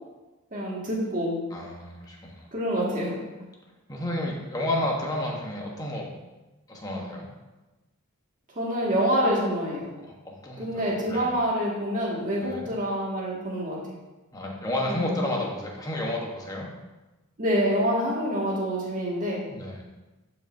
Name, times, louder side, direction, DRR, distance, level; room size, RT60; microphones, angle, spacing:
voice 1, 0.5-1.4 2.5-3.2 8.6-9.9 10.6-13.8 14.8-15.3 17.4-19.4, equal, 35° right, -4 dB, 2.0 m, -26 dB
voice 2, 1.5-2.5 3.9-6.1 6.7-7.3 10.0-11.3 12.4-12.7 14.3-16.7 19.5-19.8, left 1 dB, 15° left, -1 dB, 1.2 m, -31 dB
11.5 x 5.3 x 2.7 m, 1.1 s
head